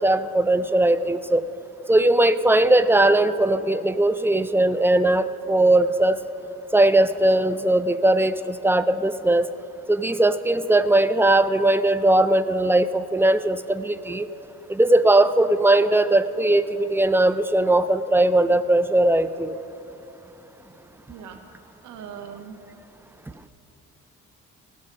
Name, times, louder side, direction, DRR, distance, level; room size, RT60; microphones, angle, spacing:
voice 1, 0.0-1.4 1.9-6.2 6.7-9.5 9.9-14.3 14.7-19.6, right 1 dB, 10° right, 12 dB, 0.4 m, -19 dB
voice 2, 21.1-21.4 21.8-22.6, right 7 dB, 80° right, 5 dB, 1.1 m, -39 dB
17.0 x 6.3 x 5.3 m, 3.0 s
cardioid pair, 90°, 30 cm